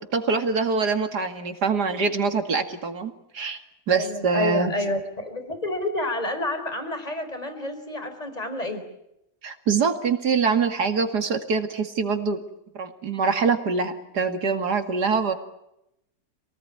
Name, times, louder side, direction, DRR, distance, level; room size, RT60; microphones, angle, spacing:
voice 1, 0.1-3.6 3.9-4.7 9.4-12.4 12.7-15.3, right 5 dB, 80° right, 7 dB, 2.7 m, -24 dB
voice 2, 4.0-8.8, left 1 dB, 25° left, 7 dB, 4.3 m, -29 dB
27.5 x 19.0 x 9.7 m, 0.85 s
omnidirectional pair, 1.7 m